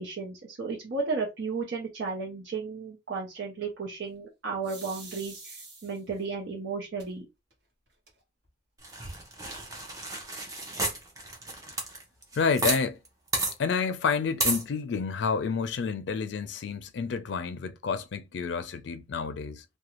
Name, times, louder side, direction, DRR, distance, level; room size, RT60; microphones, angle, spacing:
voice 1, 0.0-5.6 5.8-7.2, right 4 dB, 80° right, 0.7 m, -34 dB
sound 1, 4.6-6.2 7.0-7.1 7.5-7.6 7.9-8.5, right 3 dB, 60° right, 1.2 m, -46 dB
sound 2, 8.8-12.8 13.0-13.1 13.3-13.5 14.4-14.6, right 2 dB, 20° right, 0.6 m, -31 dB
voice 2, 12.4-13.0 13.6-19.6, left 5 dB, 80° left, 0.4 m, -29 dB
2.5 x 2.2 x 2.9 m
head